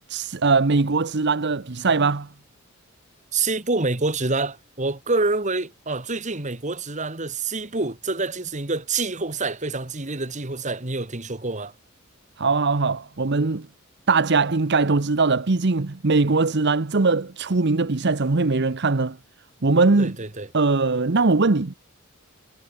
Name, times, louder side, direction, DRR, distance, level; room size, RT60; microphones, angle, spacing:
voice 1, 0.1-2.3 12.4-13.7 14.1-19.2 19.6-20.2 20.5-21.7, right 3 dB, 55° right, 0.9 m, -21 dB
voice 2, 3.3-11.7 20.0-20.5, right 3 dB, 35° right, 2.0 m, -27 dB
head